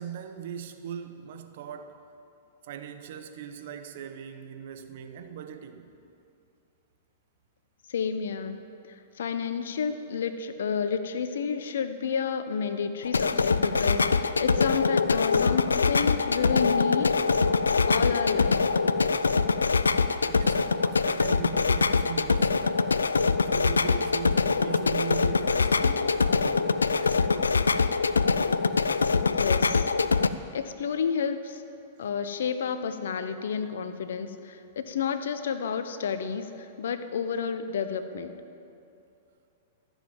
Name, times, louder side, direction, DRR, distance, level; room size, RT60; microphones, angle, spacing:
voice 1, 0.0-2.0 2.6-5.9 20.2-23.0 23.4-27.8, right 8 dB, 60° right, 1.0 m, -40 dB
voice 2, 7.9-8.6 9.2-17.1 17.8-18.6 29.3-29.9 30.5-31.6 32.0-38.3, left 6 dB, 70° left, 0.8 m, -30 dB
sound 1, 13.0-30.3, left 4 dB, 85° left, 0.4 m, -24 dB
14.0 x 7.4 x 8.9 m
hypercardioid pair, 105°, 0 cm